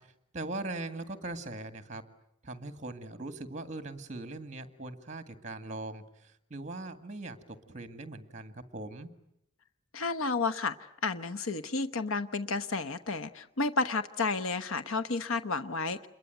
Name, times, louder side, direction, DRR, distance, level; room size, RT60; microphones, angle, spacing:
voice 1, 0.3-2.0 2.4-6.0 6.5-9.1, right 2 dB, 35° right, 10 dB, 1.9 m, -40 dB
voice 2, 9.9-16.1, left 3 dB, 85° left, 11 dB, 1.0 m, -31 dB
28.0 x 22.5 x 9.2 m, 0.79 s
head